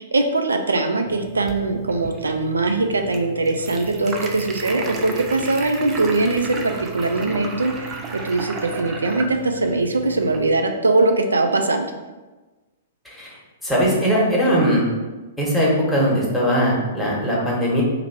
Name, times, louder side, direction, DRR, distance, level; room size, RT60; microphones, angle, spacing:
voice 1, 0.0-11.9, right 2 dB, 80° right, 5 dB, 0.3 m, -21 dB
sound 1, 1.1-10.6, right 4 dB, 25° right, 0.5 m, -34 dB
voice 2, 13.0-14.9 15.4-17.8, equal, ahead, -7 dB, 1.2 m, -20 dB
2.9 x 2.6 x 4.2 m, 1.2 s
figure-of-eight pair, 110°, 0 cm